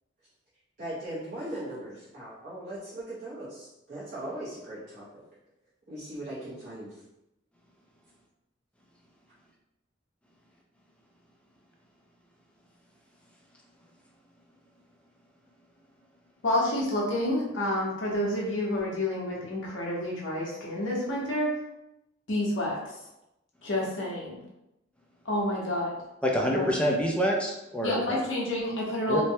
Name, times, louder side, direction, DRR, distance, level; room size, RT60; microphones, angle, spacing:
voice 1, 0.8-5.2 5.9-7.0, right 1 dB, 45° right, -10 dB, 0.8 m, -39 dB
voice 2, 16.4-21.6 22.3-22.9 23.6-24.4 25.2-26.0 26.5-26.7 27.8-29.2, left 1 dB, 70° left, -4 dB, 0.9 m, -29 dB
voice 3, 26.2-28.2 29.1-29.2, equal, 5° left, -1 dB, 0.4 m, -26 dB
3.1 x 2.1 x 2.7 m, 0.89 s
head